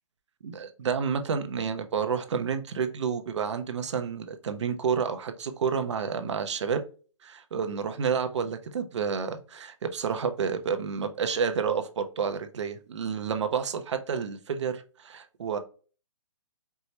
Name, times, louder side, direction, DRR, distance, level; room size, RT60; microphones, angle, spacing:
voice 1, 0.4-6.8 7.2-15.6, right 6 dB, 65° right, 8 dB, 0.6 m, -30 dB
4.5 x 2.1 x 2.7 m, 0.37 s
hypercardioid pair, 160°, 16 cm